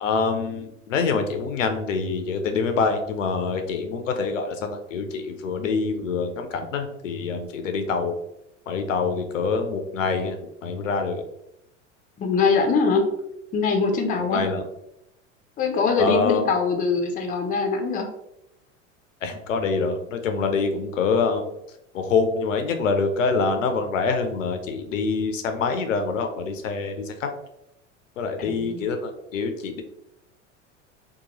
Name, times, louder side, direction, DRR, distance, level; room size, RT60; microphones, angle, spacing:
voice 1, 0.0-8.2 8.7-11.2 14.2-14.7 16.0-16.4 19.2-21.5 21.9-27.3 28.2-29.8, left 4 dB, 80° left, 6 dB, 0.5 m, -25 dB
voice 2, 12.2-13.0 13.5-14.4 15.6-18.1 28.5-28.8, left 4 dB, 20° left, 4 dB, 0.5 m, -22 dB
2.8 x 2.2 x 2.8 m, 0.82 s
hypercardioid pair, 80°, 38 cm